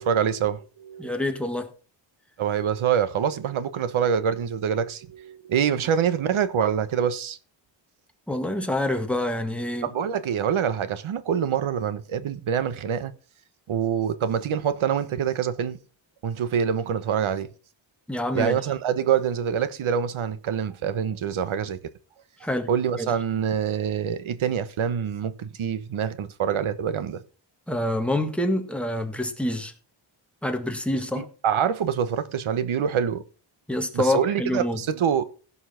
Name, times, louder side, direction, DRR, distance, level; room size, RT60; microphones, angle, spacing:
voice 1, 0.0-1.3 2.4-7.4 9.8-13.1 13.7-15.8 16.2-17.5 18.3-21.8 22.7-27.2 31.1-33.2 33.9-35.2, right 8 dB, 75° right, 1.3 m, -25 dB
voice 2, 1.0-1.7 8.3-9.9 18.1-18.6 22.4-22.7 23.0-23.1 27.7-29.7 30.4-31.3 33.7-34.8, left 1 dB, ahead, 1.8 m, -26 dB
16.5 x 5.7 x 5.7 m
wide cardioid pair, 130°, 49 cm